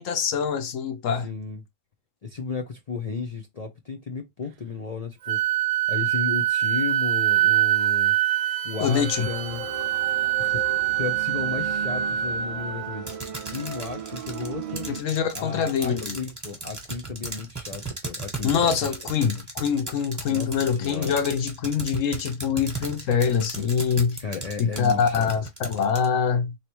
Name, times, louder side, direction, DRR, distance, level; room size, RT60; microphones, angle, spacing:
voice 1, 0.0-1.3 8.8-9.3 14.9-16.2 18.4-24.2 24.6-26.6, left 7 dB, 80° left, 1.1 m, -24 dB
voice 2, 1.2-1.6 2.2-5.4 5.9-8.2 8.6-9.7 10.4-10.6 11.0-13.0 13.5-14.9 15.3-18.7 19.6-19.7 20.3-20.5 20.8-21.1 24.2-25.3, left 4 dB, 40° left, 0.6 m, -34 dB
Wind instrument woodwind instrument, 5.3-13.0, right 12 dB, 80° right, 0.9 m, -24 dB
sound 1, 8.8-15.0, right 5 dB, 45° right, 0.4 m, -36 dB
sound 2, 13.1-26.1, right 3 dB, 15° right, 1.3 m, -36 dB
4.1 x 3.2 x 3.0 m
omnidirectional pair, 1.3 m